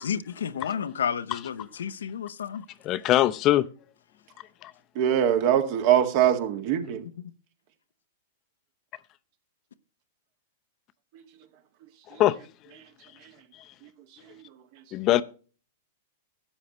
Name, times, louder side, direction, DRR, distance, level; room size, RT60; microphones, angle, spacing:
voice 1, 0.0-2.6, left 8 dB, 80° left, 0.7 m, -31 dB
voice 2, 2.8-3.7 4.6-4.7 12.2-12.4 14.9-15.2, left 14 dB, 35° left, 0.6 m, -22 dB
voice 3, 5.0-7.0, right 10 dB, 50° right, 1.9 m, -22 dB
12.5 x 8.4 x 3.1 m
hypercardioid pair, 110°, 0 cm